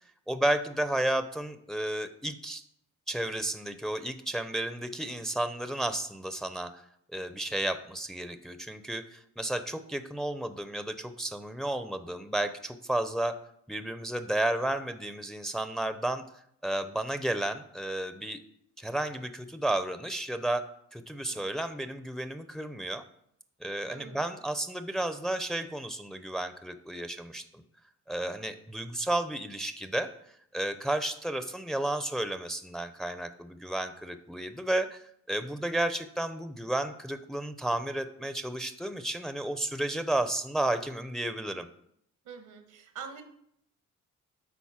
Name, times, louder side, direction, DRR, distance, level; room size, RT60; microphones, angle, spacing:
voice 1, 0.3-2.6 3.1-6.8 7.1-13.4 13.7-16.2 16.6-18.4 18.8-20.6 20.9-23.0 23.6-27.6 28.1-30.1 30.5-41.7, right 1 dB, ahead, 10 dB, 0.7 m, -32 dB
voice 2, 21.3-21.7 23.9-24.3 42.2-43.2, right 6 dB, 80° right, 7 dB, 1.4 m, -45 dB
9.4 x 4.0 x 5.8 m, 0.71 s
cardioid pair, 90°, 30 cm